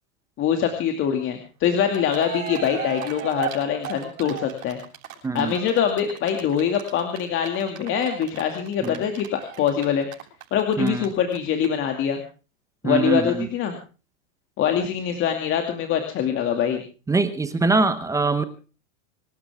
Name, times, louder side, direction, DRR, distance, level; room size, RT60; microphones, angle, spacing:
voice 1, 0.4-4.8 5.3-10.1 10.5-12.2 12.8-13.8 14.6-16.8, left 8 dB, 30° left, 5 dB, 2.4 m, -24 dB
Cheering, 1.6-1.7 1.9-11.1 11.3-11.4 11.6-11.7, right 10 dB, 85° right, 7.7 m, -36 dB
voice 2, 5.2-5.5 8.8-9.0 10.8-11.1 12.8-13.5 17.1-18.4, right 3 dB, 10° right, 12 dB, 0.9 m, -22 dB
26.0 x 13.0 x 3.5 m, 0.35 s
supercardioid pair, 145°, 41 cm